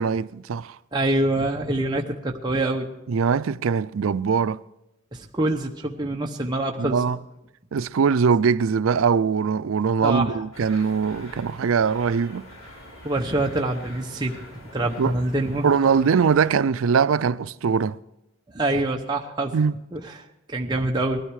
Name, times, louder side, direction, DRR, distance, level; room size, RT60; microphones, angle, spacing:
voice 1, 0.0-0.8 3.1-4.6 6.8-7.2 7.7-12.5 15.0-15.1 15.6-18.0 19.5-19.7, right 6 dB, 75° right, 0.4 m, -22 dB
voice 2, 0.9-2.9 5.1-7.0 10.0-10.4 13.0-14.4 14.7-15.7 18.5-19.5 19.9-21.2, right 2 dB, 20° right, 0.9 m, -25 dB
sound 1, 10.5-16.5, left 1 dB, 80° left, 4.0 m, -45 dB
19.5 x 13.5 x 4.8 m
head